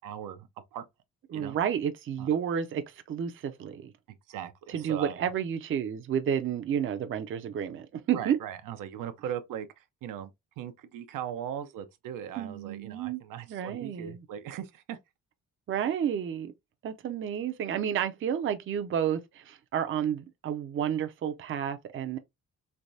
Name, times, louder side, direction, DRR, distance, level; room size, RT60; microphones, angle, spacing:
voice 1, 0.0-0.9 1.3-1.6 2.2-2.3 4.3-5.2 8.1-10.3 10.6-15.0, right 9 dB, 90° right, 0.6 m, -39 dB
voice 2, 1.3-3.9 4.7-8.4 12.4-13.2 13.5-14.2 15.7-16.5 16.8-22.2, right 9 dB, 40° right, 0.4 m, -31 dB
3.3 x 3.1 x 2.6 m
cardioid pair, 120°, 31 cm